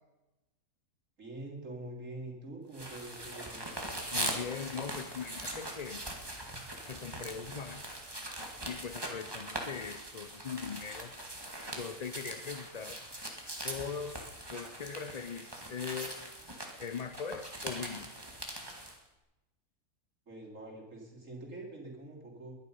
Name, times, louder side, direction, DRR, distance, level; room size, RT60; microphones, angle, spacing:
voice 1, 1.2-3.7 20.3-22.6, right 2 dB, 55° right, -1 dB, 3.7 m, -45 dB
sound 1, 2.7-19.0, right 1 dB, 15° right, 2.0 m, -41 dB
voice 2, 4.1-6.0 6.9-7.8 8.7-11.1 11.7-13.0 13.6-14.2 14.5-16.3 16.8-18.1, left 6 dB, 85° left, 12 dB, 0.3 m, -40 dB
21.5 x 11.0 x 5.5 m, 1.0 s
omnidirectional pair, 1.7 m